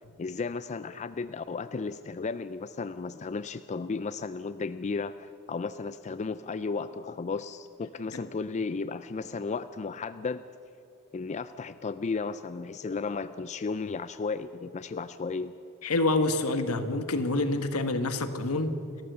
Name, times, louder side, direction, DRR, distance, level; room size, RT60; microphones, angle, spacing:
voice 1, 0.2-10.4 11.1-15.6, left 4 dB, 30° left, 13 dB, 0.4 m, -34 dB
voice 2, 15.8-18.7, left 2 dB, 75° left, 9 dB, 1.5 m, -27 dB
29.0 x 14.0 x 6.8 m, 2.7 s
head